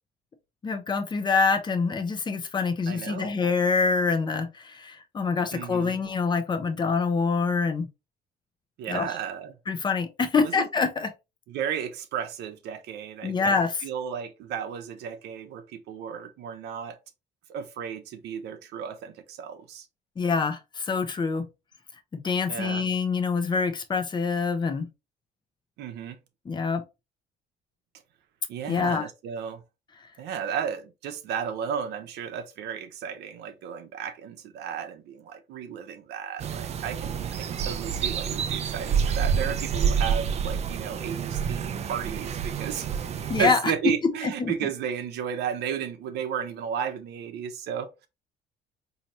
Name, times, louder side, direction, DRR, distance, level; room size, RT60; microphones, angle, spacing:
voice 1, 0.6-7.9 8.9-9.1 9.7-11.1 13.2-13.7 20.2-21.5 22.1-24.9 26.5-26.8 28.7-29.0 43.3-43.6 44.2-44.5, left 5 dB, 25° left, 0.7 m, -25 dB
voice 2, 2.9-3.3 5.5-6.0 8.8-9.6 10.4-10.7 11.5-13.6 13.8-17.0 17.5-19.9 22.5-22.8 25.8-26.2 28.5-29.6 30.2-48.1, right 8 dB, 80° right, 0.8 m, -34 dB
sound 1, 36.4-43.5, right 7 dB, 40° right, 0.5 m, -28 dB
4.1 x 2.8 x 2.9 m
cardioid pair, 110°, 17 cm